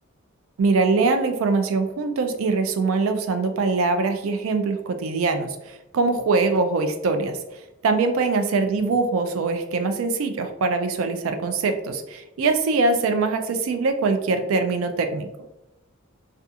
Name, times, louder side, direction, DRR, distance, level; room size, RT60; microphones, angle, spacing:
voice 1, 0.6-7.4 7.8-15.3, right 3 dB, 80° right, 7 dB, 0.4 m, -23 dB
2.4 x 2.3 x 2.6 m, 0.94 s
head